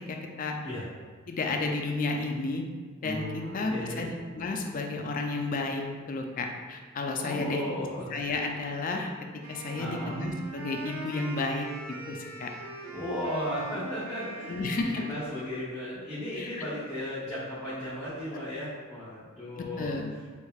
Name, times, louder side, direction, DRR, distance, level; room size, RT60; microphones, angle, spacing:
voice 1, 0.1-0.5 1.3-2.6 3.0-5.8 6.1-7.6 8.1-9.1 9.5-11.7 12.1-12.5 14.5-15.0 16.4-16.7 19.6-20.1, left 3 dB, 40° left, 2 dB, 0.3 m, -32 dB
sound 1, 3.0-6.6, right 1 dB, 45° right, 1.0 m, -45 dB
voice 2, 3.4-4.1 7.2-8.0 9.8-10.2 12.9-14.7 15.0-20.0, left 1 dB, 5° left, -15 dB, 0.9 m, -35 dB
Wind instrument woodwind instrument, 9.4-15.6, right 2 dB, 85° right, 0.5 m, -41 dB
3.4 x 3.2 x 2.3 m, 1.5 s
head